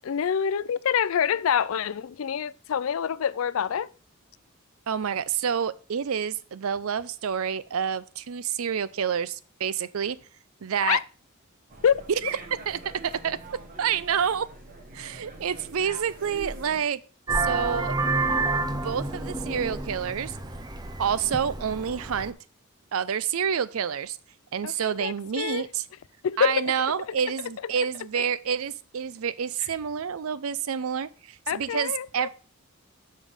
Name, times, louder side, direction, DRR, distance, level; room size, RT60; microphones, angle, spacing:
voice 1, 0.0-3.9 10.9-11.0 11.8-12.0 24.6-25.7 26.2-26.7 31.5-32.3, left 8 dB, 70° left, 0.4 m, -26 dB
voice 2, 4.9-10.2 10.6-11.0 12.2-12.4 12.7-13.4 13.8-14.5 14.9-17.0 17.3-18.0 18.7-20.4 21.0-22.4 22.9-24.2 24.5-25.8 26.4-32.3, right 7 dB, 75° right, 0.5 m, -28 dB
sound 1, 11.7-16.8, right 2 dB, 40° right, 1.3 m, -44 dB
Vehicle horn car horn honking, 17.3-22.3, right 3 dB, 20° right, 0.7 m, -29 dB
7.3 x 5.2 x 5.4 m
head